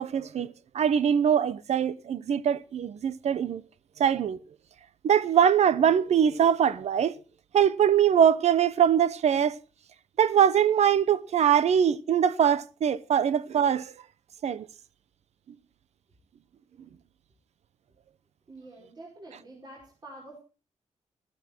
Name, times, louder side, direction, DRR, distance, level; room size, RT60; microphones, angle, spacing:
voice 1, 0.0-3.6 4.0-4.4 5.0-7.1 7.5-9.5 10.2-13.9 14.4-14.7, right 8 dB, 75° right, 0.9 m, -23 dB
voice 2, 18.5-20.4, right 2 dB, 40° right, 5.2 m, -47 dB
14.5 x 14.0 x 4.5 m
wide cardioid pair, 130°, 12 cm